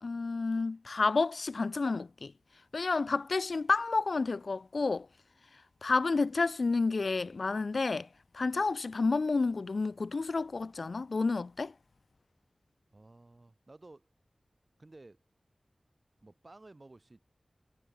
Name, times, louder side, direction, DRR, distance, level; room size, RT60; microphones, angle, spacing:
voice 1, 0.0-2.3 2.7-5.1 5.8-8.1 8.3-11.7, left 3 dB, 70° left, 1.0 m, -30 dB
voice 2, 12.9-14.1 14.8-15.2 16.2-17.2, right 2 dB, 45° right, 7.7 m, -54 dB
cardioid pair, 45°, 0 cm